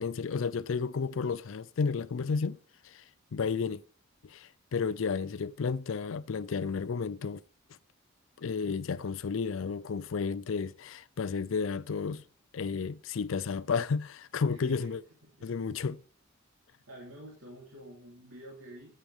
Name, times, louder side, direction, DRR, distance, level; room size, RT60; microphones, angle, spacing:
voice 1, 0.0-2.6 2.8-3.0 3.3-3.8 4.2-7.4 8.4-12.2 12.5-15.0 15.4-16.0, left 5 dB, 65° left, 0.4 m, -32 dB
voice 2, 14.5-15.5 16.9-18.9, right 1 dB, 80° right, 3.2 m, -49 dB
11.5 x 8.6 x 3.6 m
head